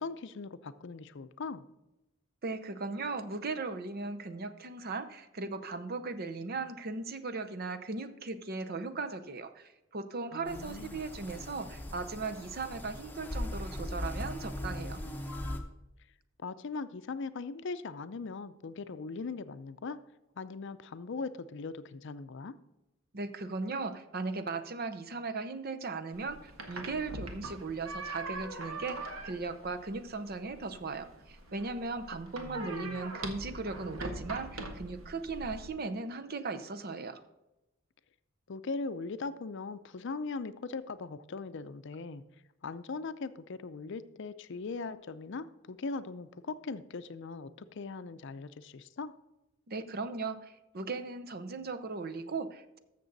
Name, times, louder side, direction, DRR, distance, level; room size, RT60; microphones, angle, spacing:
voice 1, 0.0-1.6 10.3-11.0 16.4-20.0 20.4-22.5 32.4-32.9 38.5-42.2 42.6-49.1, left 4 dB, 60° left, 13 dB, 0.5 m, -40 dB
voice 2, 2.4-15.0 23.1-37.2 49.7-52.8, right 3 dB, 50° right, 9 dB, 0.7 m, -38 dB
sound 1, 10.5-15.6, left 1 dB, 10° left, 0.9 m, -39 dB
sound 2, 26.1-35.7, right 2 dB, 85° right, 1.5 m, -42 dB
13.5 x 6.8 x 4.0 m, 0.97 s
head